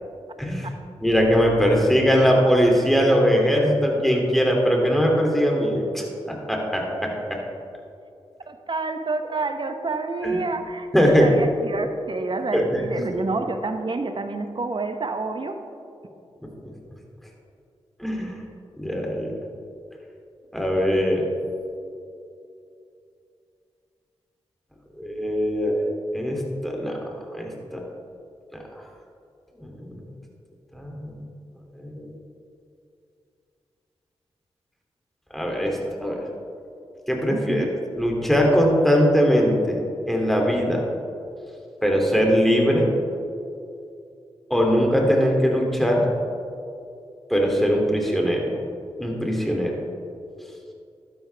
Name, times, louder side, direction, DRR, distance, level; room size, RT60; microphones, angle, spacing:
voice 1, 1.0-7.1 10.2-10.4 10.9-11.3 12.5-12.8 13.1-13.2 16.6-16.7 18.0-18.3 18.8-19.3 20.5-21.2 25.0-25.8 26.1-27.0 27.3-27.8 29.6-30.0 30.7-31.2 31.8-32.1 35.3-36.2 37.1-37.7 38.0-39.8 40.1-40.8 41.8-42.9 44.5-46.1 47.3-48.5 49.0-49.8, equal, ahead, -1 dB, 2.7 m, -21 dB
voice 2, 8.5-15.5 37.3-37.7, right 3 dB, 45° right, 7 dB, 1.0 m, -28 dB
12.0 x 10.0 x 3.4 m, 2.6 s
supercardioid pair, 40°, 11 cm